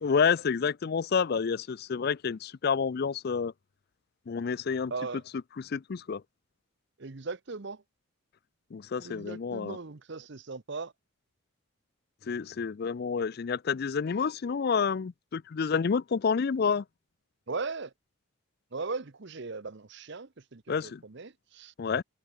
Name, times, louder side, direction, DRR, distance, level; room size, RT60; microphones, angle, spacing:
voice 1, 0.0-3.5 4.3-4.9 5.6-6.2 8.7-9.8 12.3-16.8 20.7-21.0 21.8-22.0, left 6 dB, 45° left, 0.4 m, -29 dB
voice 2, 4.9-5.2 7.0-7.8 9.0-10.9 17.5-17.9 18.7-21.7, right 4 dB, 55° right, 0.9 m, -38 dB
head